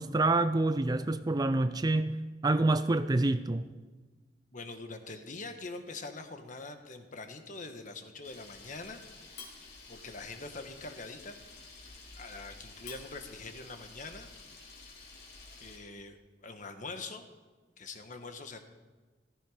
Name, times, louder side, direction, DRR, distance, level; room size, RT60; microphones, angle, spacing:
voice 1, 0.0-2.2 2.4-3.6, right 2 dB, 20° right, 0.4 m, -27 dB
voice 2, 4.5-9.0 9.4-9.5 9.9-11.4 12.2-14.3 15.6-17.3 17.8-18.6, left 3 dB, 45° left, 1.4 m, -44 dB
Camera, 8.2-15.8, left 3 dB, 65° left, 3.5 m, -50 dB
14.5 x 14.5 x 5.0 m
head